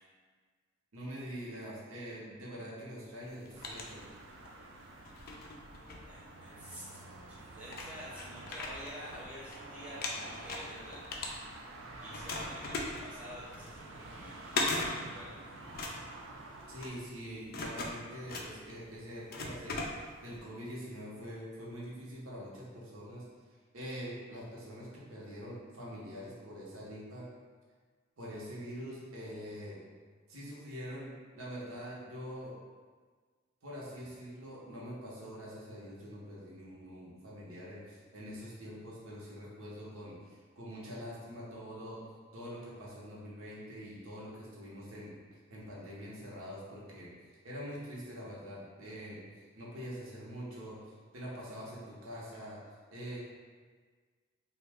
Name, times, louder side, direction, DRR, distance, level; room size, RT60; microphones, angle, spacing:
voice 1, 0.9-4.0 16.7-23.3 23.7-27.3 28.2-29.8 30.3-32.5 33.6-42.0 42.3-47.1 47.4-52.6 52.9-53.2, equal, 85° right, -6 dB, 0.9 m, -44 dB
sound 1, 3.2-4.6 5.0-6.7 7.3-7.4 7.7-9.6 9.9-11.8 12.1-20.4, left 2 dB, 45° left, 0.4 m, -39 dB
sound 2, 3.5-16.9, right 2 dB, 65° right, 0.4 m, -49 dB
voice 2, 6.1-6.8 7.5-11.1 11.5-15.4, equal, 5° right, -8 dB, 0.6 m, -49 dB
3.0 x 2.3 x 3.4 m, 1.5 s
head